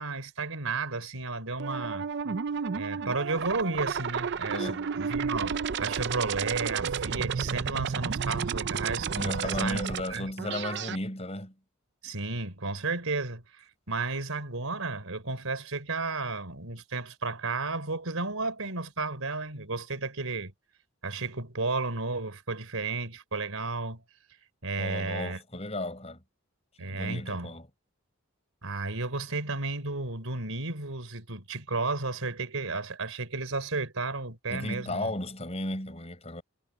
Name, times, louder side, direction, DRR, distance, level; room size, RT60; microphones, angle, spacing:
voice 1, 0.0-2.1 2.7-9.8 10.1-10.3 12.0-20.5 21.0-24.0 24.6-25.4 26.8-27.5 28.6-35.1, right 3 dB, 75° right, 3.5 m, -33 dB
sound 1, 1.6-11.0, right 6 dB, 50° right, 0.5 m, -32 dB
voice 2, 4.5-5.0 9.2-11.5 24.8-26.2 26.8-27.7 34.5-36.4, left 1 dB, 30° left, 5.4 m, -35 dB
head